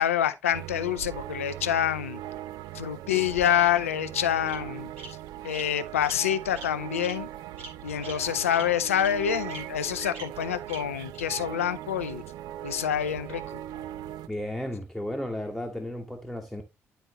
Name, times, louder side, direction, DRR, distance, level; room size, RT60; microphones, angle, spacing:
voice 1, 0.0-2.2 2.7-4.9 5.4-7.3 7.8-12.2 12.6-13.6, left 10 dB, 80° left, 0.4 m, -27 dB
sound 1, 0.5-14.3, right 13 dB, 65° right, 0.4 m, -39 dB
Bird vocalization bird call bird song, 3.0-3.8 4.5-4.6 5.0-5.1 5.5-5.6 6.0-6.2 6.5-6.7 7.0-7.1 7.6-7.7 8.0-8.1 8.5-8.6 9.0-9.1 9.5-9.6 10.1-10.2 10.7-10.8 11.1-11.2, right 2 dB, 80° right, 2.1 m, -42 dB
voice 2, 14.3-16.6, left 1 dB, ahead, 1.2 m, -34 dB
10.5 x 4.3 x 3.0 m
figure-of-eight pair, 45°, 7 cm